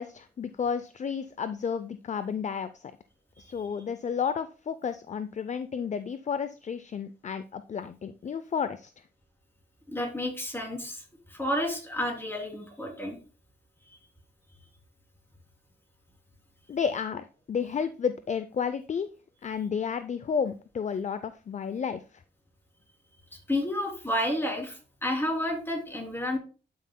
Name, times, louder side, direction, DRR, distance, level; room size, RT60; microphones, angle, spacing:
voice 1, 0.0-2.7 3.4-8.9 16.7-19.1 19.4-22.0, left 6 dB, 40° left, 12 dB, 0.5 m, -31 dB
voice 2, 9.9-11.0 11.3-13.2 23.3-26.4, left 1 dB, 10° left, 0 dB, 3.1 m, -31 dB
11.5 x 5.6 x 2.2 m, 0.35 s
cardioid pair, 75°, 18 cm